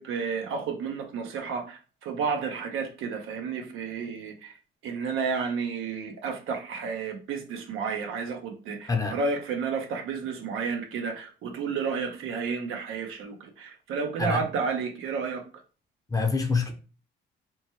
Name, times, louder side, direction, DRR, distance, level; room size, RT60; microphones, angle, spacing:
voice 1, 0.0-4.5 4.8-15.4, right 5 dB, 85° right, 0.7 m, -31 dB
voice 2, 16.1-16.7, left 4 dB, 20° left, 0.6 m, -26 dB
2.9 x 2.1 x 2.9 m
cardioid pair, 90°, 20 cm